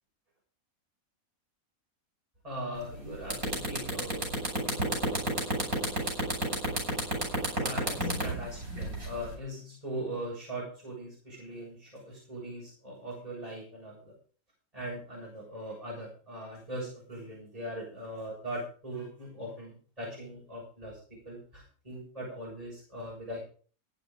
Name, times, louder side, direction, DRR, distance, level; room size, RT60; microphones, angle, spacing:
voice 1, 2.4-4.3 7.6-14.1 14.7-21.0 21.3-23.4, right 1 dB, 25° right, -4 dB, 7.0 m, -40 dB
sound 1, 2.8-2.9 3.2-9.3, right 1 dB, 75° right, 7.2 m, -30 dB
14.0 x 10.5 x 5.1 m, 0.41 s
omnidirectional pair, 1.5 m